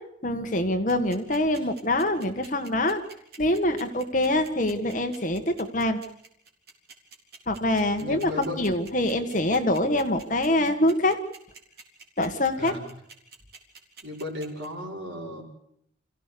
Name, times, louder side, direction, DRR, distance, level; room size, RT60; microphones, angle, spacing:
voice 1, 0.2-3.0 3.4-6.0 7.5-11.2 12.2-12.7, left 1 dB, 40° left, 7 dB, 1.6 m, -25 dB
sound 1, 0.9-14.7, right 4 dB, 55° right, 3.9 m, -46 dB
voice 2, 8.0-8.6 12.6-12.9 14.0-15.4, left 1 dB, 70° right, -1 dB, 5.7 m, -35 dB
27.0 x 16.0 x 6.9 m, 0.72 s
head